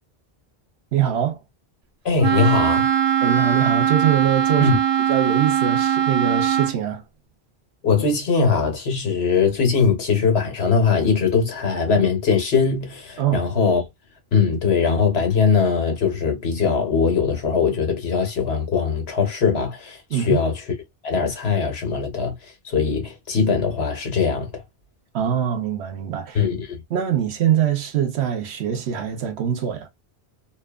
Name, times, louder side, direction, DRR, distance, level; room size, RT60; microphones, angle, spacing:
voice 1, 0.9-1.4 3.2-4.8 5.1-7.0 13.2-13.4 20.1-20.4 25.1-26.5 26.9-29.9, right 9 dB, 75° right, 0.9 m, -23 dB
voice 2, 2.0-2.9 4.6-4.8 7.8-13.8 14.3-20.5 21.0-22.3 22.6-24.6 26.3-26.8, left 5 dB, 70° left, 1.3 m, -21 dB
Wind instrument woodwind instrument, 2.2-6.8, right 9 dB, 50° right, 0.5 m, -20 dB
2.6 x 2.3 x 2.3 m
omnidirectional pair, 1.1 m